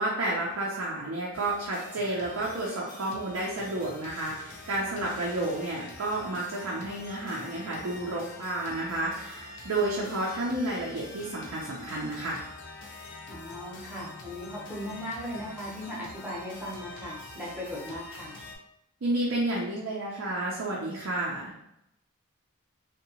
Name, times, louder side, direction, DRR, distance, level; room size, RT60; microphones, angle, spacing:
voice 1, 0.0-12.4 19.0-21.5, right 2 dB, 65° right, -4 dB, 0.5 m, -31 dB
sound 1, 1.3-18.6, left 2 dB, 55° left, 0.5 m, -45 dB
voice 2, 13.3-18.3, equal, 5° right, -6 dB, 0.6 m, -38 dB
2.7 x 2.2 x 2.7 m, 0.81 s
head